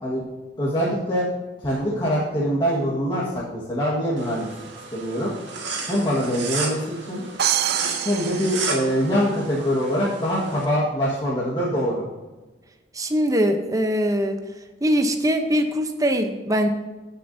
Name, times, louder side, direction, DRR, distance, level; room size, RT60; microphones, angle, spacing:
voice 1, 0.6-1.3 1.6-4.5 4.9-5.3 5.9-7.2 8.0-12.0, equal, 25° left, -7 dB, 1.7 m, -24 dB
sound 1, 4.2-10.6, right 4 dB, 85° right, 2.0 m, -33 dB
sound 2, 7.4-9.4, right 11 dB, 60° right, 0.4 m, -26 dB
voice 2, 12.9-14.4 14.8-16.7, equal, 20° right, 5 dB, 0.8 m, -22 dB
16.0 x 6.9 x 2.7 m, 1.2 s
head